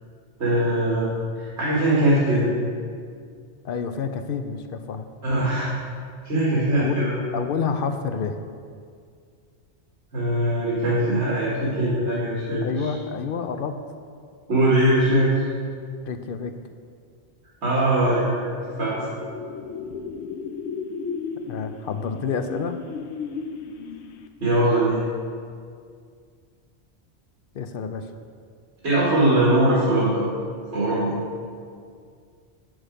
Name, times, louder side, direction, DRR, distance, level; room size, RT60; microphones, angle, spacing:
voice 1, 0.4-1.1 1.3-2.5 5.2-5.7 6.2-7.2 10.1-12.9 14.5-15.4 17.6-18.9 24.4-25.0 28.8-30.2 30.7-31.1, right 1 dB, 80° right, -8 dB, 1.9 m, -21 dB
voice 2, 3.6-5.1 6.8-7.1 7.3-8.4 12.6-13.8 16.1-16.5 21.5-22.8 27.5-28.1, left 6 dB, 65° left, 8 dB, 0.7 m, -28 dB
sound 1, 18.0-24.4, left 5 dB, 90° left, 0.9 m, -35 dB
8.3 x 6.3 x 5.0 m, 2.2 s
omnidirectional pair, 1.1 m